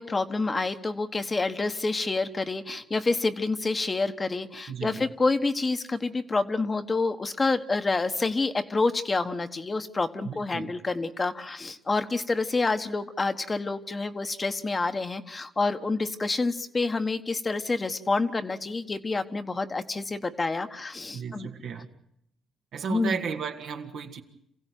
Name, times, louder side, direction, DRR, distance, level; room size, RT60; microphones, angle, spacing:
voice 1, 0.0-21.5 22.9-23.2, left 3 dB, 25° left, 1.3 m, -28 dB
voice 2, 4.7-5.1 10.2-10.7 21.1-21.9 22.7-24.2, right 7 dB, 70° right, 2.2 m, -34 dB
27.5 x 16.0 x 9.2 m
cardioid pair, 90°, 0 cm